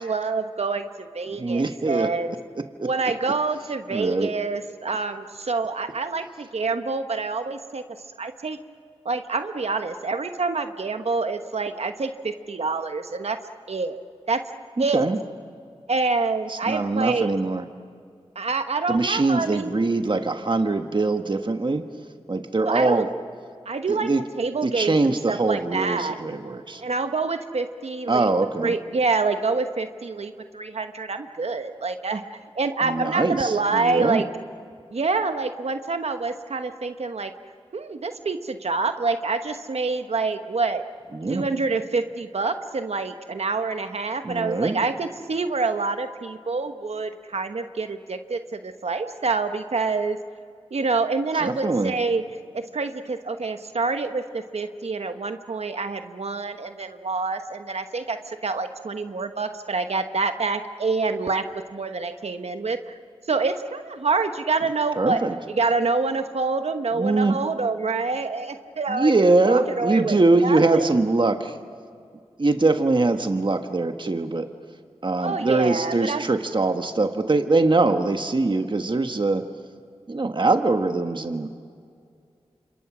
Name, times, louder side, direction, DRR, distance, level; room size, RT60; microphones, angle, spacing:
voice 1, 0.0-2.3 2.8-7.8 8.2-8.6 9.0-13.4 13.7-14.0 14.3-14.4 14.8-15.0 15.9-17.3 18.3-19.7 22.6-23.0 23.7-24.1 24.4-26.2 26.8-28.3 28.6-32.2 32.6-34.3 34.9-37.3 37.7-40.8 41.3-50.2 50.7-52.2 52.5-62.8 63.3-65.2 65.5-70.2 70.4-70.9 75.2-76.2, right 4 dB, 75° right, 8 dB, 1.2 m, -26 dB
voice 2, 1.4-2.1 2.6-2.9 3.9-4.3 14.8-15.2 16.5-17.6 18.9-21.9 22.3-23.1 23.9-24.2 24.6-26.8 28.1-28.7 32.8-34.2 41.1-41.4 44.2-44.8 51.3-51.9 65.0-65.4 66.9-67.4 68.9-71.6 72.4-74.5 75.0-79.5 80.1-81.5, right 3 dB, 45° right, 6 dB, 1.4 m, -22 dB
29.5 x 27.0 x 6.2 m, 2.3 s
cardioid pair, 45°, 11 cm